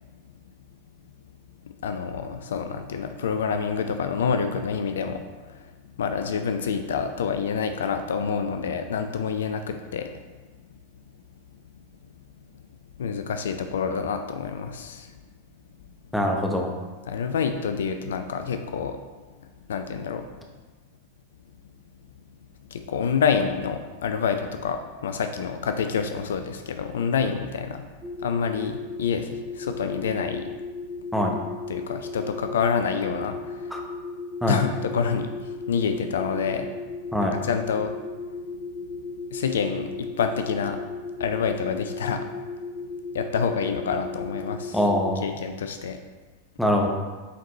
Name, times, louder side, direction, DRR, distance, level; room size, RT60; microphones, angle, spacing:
voice 1, 1.6-10.1 13.0-15.2 17.1-19.0 19.7-20.3 22.7-27.9 28.2-30.5 31.7-33.8 34.5-36.7 37.2-37.9 39.3-40.8 41.2-42.3 43.1-44.8 45.2-46.0, left 6 dB, 65° left, 7 dB, 0.4 m, -27 dB
voice 2, 16.1-16.7 31.1-31.4 33.7-33.8 34.4-34.6 37.1-37.3 44.7-45.3 46.6-46.9, left 1 dB, ahead, 0 dB, 0.9 m, -23 dB
sound 1, 28.0-45.2, left 4 dB, 15° right, 2.0 m, -36 dB
8.3 x 4.0 x 3.1 m, 1.3 s
figure-of-eight pair, 90°, 0 cm